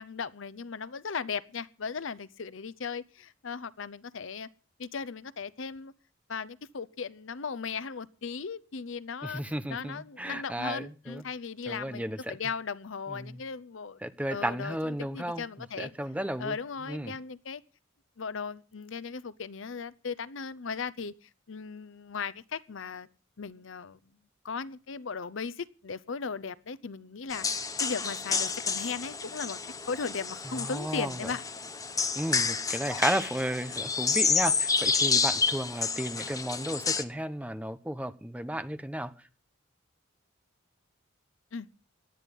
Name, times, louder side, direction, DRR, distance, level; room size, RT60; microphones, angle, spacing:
voice 1, 0.0-4.5 4.8-5.9 6.3-9.4 9.7-14.0 14.3-15.9 16.4-17.6 18.2-23.1 23.4-24.0 24.4-27.5 27.8-29.6 29.9-31.4 41.5-41.7, left 5 dB, 70° left, 0.7 m, -37 dB
voice 2, 9.2-11.2 11.7-12.4 13.1-13.4 14.0-15.4 15.8-16.6 16.9-17.2 30.4-31.3 32.1-39.3, right 1 dB, 5° right, 1.0 m, -33 dB
sound 1, 27.3-37.0, left 5 dB, 15° left, 1.0 m, -29 dB
18.5 x 12.0 x 5.3 m
head